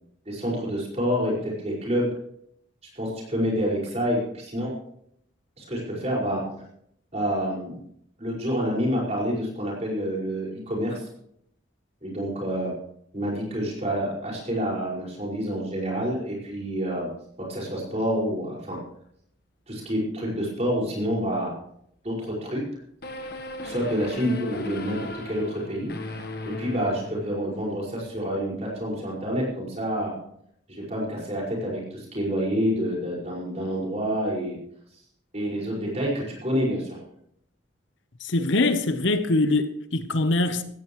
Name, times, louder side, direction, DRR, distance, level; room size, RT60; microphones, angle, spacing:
voice 1, 0.3-2.1 2.9-4.7 5.6-6.4 7.1-7.8 8.2-11.1 12.0-12.7 13.1-17.1 17.5-18.8 19.7-21.5 22.0-22.6 23.6-25.9 26.6-30.1 30.7-34.6 35.3-37.0, equal, 35° right, 5.4 m, -28 dB
sound 1, 23.0-27.7, left 2 dB, 50° left, 1.3 m, -37 dB
voice 2, 38.2-40.6, left 2 dB, 70° left, 1.0 m, -23 dB
16.0 x 15.0 x 3.1 m
head